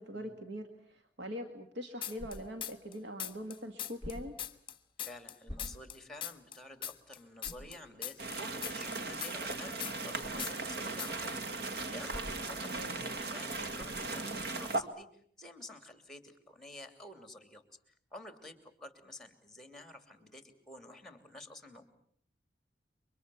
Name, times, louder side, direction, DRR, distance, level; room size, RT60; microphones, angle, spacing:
voice 1, 0.0-4.3 12.6-13.0, equal, 75° right, 5 dB, 2.0 m, -43 dB
sound 1, 2.0-2.9 3.2-6.0 6.2-10.1 10.4-10.7 11.0-11.3, left 10 dB, 30° left, 1.3 m, -40 dB
sound 2, 2.1-2.7 4.0-4.5 5.4-6.1 6.6-6.7 7.4-7.8 10.2-10.4 12.1-12.6 13.8-14.1, left 1 dB, 20° right, 7.2 m, -46 dB
voice 2, 5.0-11.4 11.9-17.6 18.1-21.8, left 1 dB, ahead, 8 dB, 3.0 m, -50 dB
sound 3, 8.2-14.8, right 3 dB, 60° right, 1.9 m, -38 dB
29.0 x 24.5 x 7.1 m, 0.62 s
head